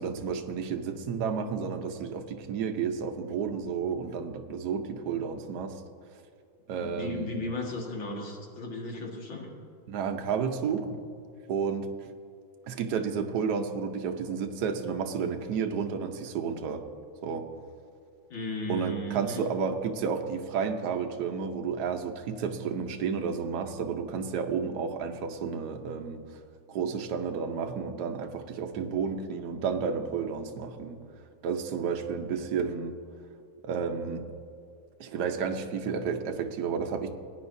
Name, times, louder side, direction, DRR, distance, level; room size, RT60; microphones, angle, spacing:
voice 1, 0.0-5.8 6.7-7.4 9.9-11.0 11.5-11.9 12.7-16.8 17.2-17.4 18.7-26.2 26.7-31.0 31.4-32.9 33.6-34.3 35.0-37.1, right 6 dB, 60° right, 5 dB, 1.3 m, -31 dB
voice 2, 6.8-9.5 18.3-19.4, left 1 dB, 70° left, -1 dB, 2.6 m, -35 dB
19.5 x 9.5 x 2.7 m, 2.4 s
omnidirectional pair, 2.2 m